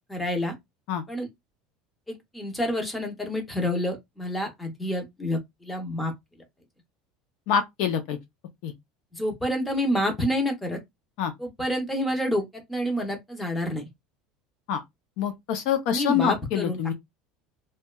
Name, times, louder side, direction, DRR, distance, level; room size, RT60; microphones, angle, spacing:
voice 1, 0.1-0.5 1.1-1.3 2.1-6.1 9.1-10.8 11.4-13.9 15.9-16.9, equal, 5° left, 0.7 m, -28 dB
voice 2, 7.5-8.2 8.6-8.7 11.2-11.3 14.7-14.8 15.2-16.9, left 8 dB, 60° left, 0.5 m, -25 dB
2.8 x 2.1 x 2.2 m
cardioid pair, 160°, 0 cm